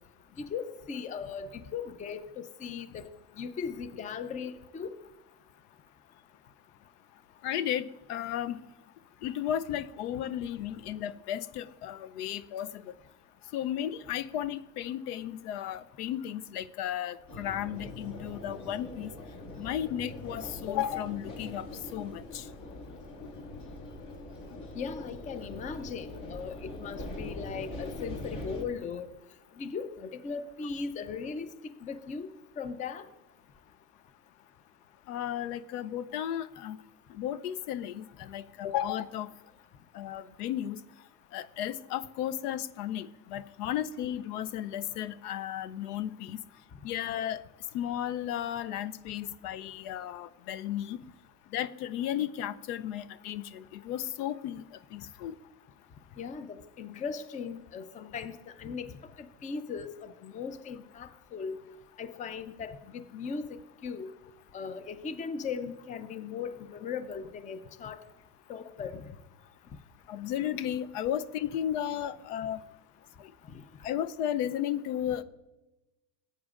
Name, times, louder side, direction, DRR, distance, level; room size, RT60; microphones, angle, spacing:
voice 1, 0.4-3.1 3.4-4.9 24.7-29.1 29.6-31.5 31.8-32.3 32.6-33.0 56.2-61.6 62.0-64.1 64.5-68.0 68.5-69.0 73.5-73.6, left 6 dB, 20° left, 0.4 m, -38 dB
voice 2, 7.4-8.6 9.2-12.9 13.5-19.1 19.6-21.7 21.9-22.5 35.1-36.8 37.1-39.3 39.9-40.8 41.3-46.4 46.8-47.4 47.7-51.0 51.5-54.6 54.9-55.4 70.1-72.6 73.8-75.2, left 11 dB, 85° left, 0.7 m, -34 dB
sound 1, 17.3-28.7, left 1 dB, 40° left, 2.2 m, -42 dB
14.5 x 8.6 x 2.4 m
supercardioid pair, 120°, 45 cm